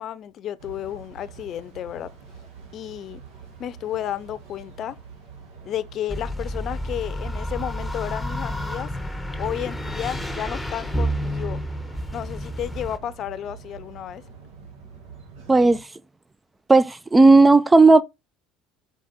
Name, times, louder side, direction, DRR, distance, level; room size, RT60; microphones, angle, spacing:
voice 1, 0.0-2.1 2.7-3.2 3.6-5.0 5.6-8.9 9.4-11.6 12.1-14.2, left 11 dB, 55° left, 0.6 m, -32 dB
sound 1, 0.6-15.8, right 5 dB, 80° right, 1.9 m, -45 dB
sound 2, 6.1-13.0, equal, 5° left, 0.9 m, -30 dB
voice 2, 15.5-15.8 16.7-18.0, right 3 dB, 15° right, 0.4 m, -13 dB
5.2 x 5.0 x 4.1 m
supercardioid pair, 85°, 0 cm